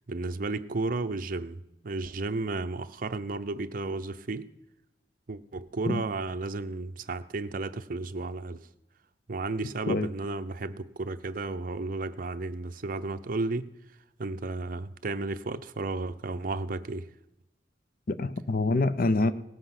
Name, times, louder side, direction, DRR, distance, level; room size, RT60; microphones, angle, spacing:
voice 1, 0.1-1.6 1.8-4.5 5.3-8.7 9.3-13.7 14.2-17.1, right 3 dB, 55° right, 10 dB, 0.6 m, -33 dB
voice 2, 18.1-19.3, left 2 dB, 55° left, 13 dB, 0.6 m, -26 dB
17.5 x 7.7 x 6.0 m, 0.94 s
head